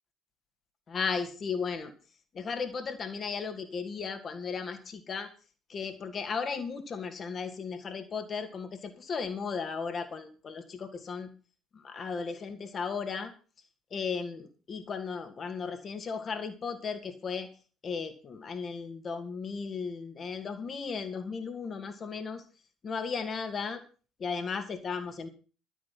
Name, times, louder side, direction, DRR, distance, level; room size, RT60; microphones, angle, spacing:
voice 1, 0.9-1.9 2.3-5.3 5.7-11.3 11.7-13.3 13.9-17.5 17.8-22.4 22.8-23.8 24.2-25.3, left 5 dB, 40° left, 7 dB, 2.6 m, -35 dB
12.5 x 9.5 x 6.1 m, 0.36 s
figure-of-eight pair, 50°, 0 cm